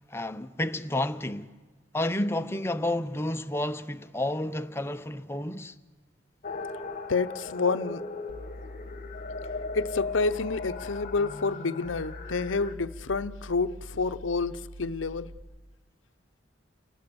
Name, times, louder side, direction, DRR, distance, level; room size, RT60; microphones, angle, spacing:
voice 1, 0.1-1.5 1.9-5.7, left 1 dB, 15° left, 0.8 m, -30 dB
sound 1, 6.4-12.7, left 3 dB, 40° left, 1.2 m, -38 dB
voice 2, 7.1-8.0 9.7-15.3, left 4 dB, 90° left, 0.8 m, -29 dB
sound 2, 8.3-15.4, left 1 dB, 75° right, 2.3 m, -44 dB
29.5 x 19.0 x 7.0 m
head